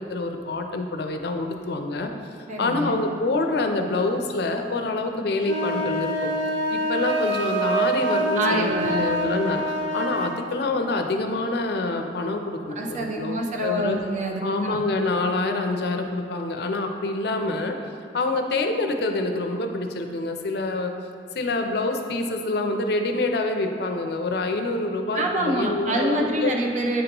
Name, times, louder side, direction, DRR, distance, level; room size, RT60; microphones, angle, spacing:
voice 1, 0.0-2.1 2.6-6.3 6.7-9.6 9.9-14.0 14.4-17.8 18.1-20.9 21.3-26.5, left 2 dB, 65° left, 5 dB, 0.5 m, -26 dB
voice 2, 2.5-3.0 8.4-9.3 12.8-14.8 25.1-27.0, right 1 dB, 45° right, 1 dB, 0.7 m, -26 dB
sound 1, 5.4-10.4, right 1 dB, 90° right, 0.6 m, -26 dB
8.8 x 2.9 x 5.2 m, 2.4 s
head